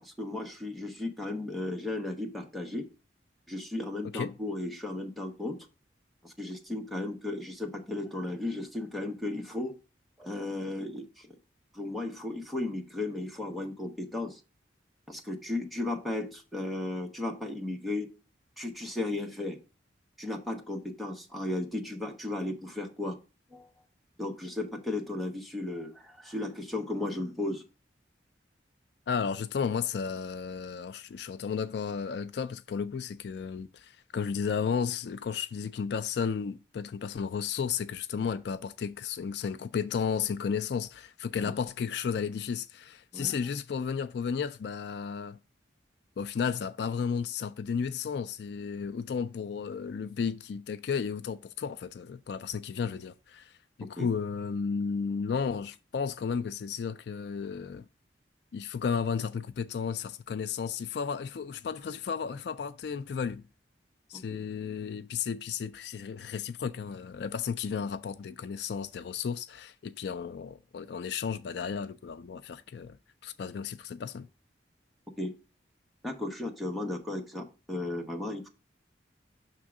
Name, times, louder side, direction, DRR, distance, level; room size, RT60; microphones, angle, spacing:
voice 1, 0.0-2.8 3.5-5.6 6.2-9.7 10.2-11.3 11.7-14.4 15.1-18.1 18.6-19.6 20.2-23.2 23.5-23.7 24.2-27.6 41.4-41.5 43.1-43.3 54.0-54.1 64.3-64.4 75.2-75.3 76.0-78.5, left 2 dB, ahead, 1.0 m, -35 dB
voice 2, 29.1-45.4 46.2-57.9 58.5-63.4 64.1-73.0 73.2-74.3, left 6 dB, 60° left, 0.3 m, -33 dB
6.1 x 3.7 x 6.0 m
head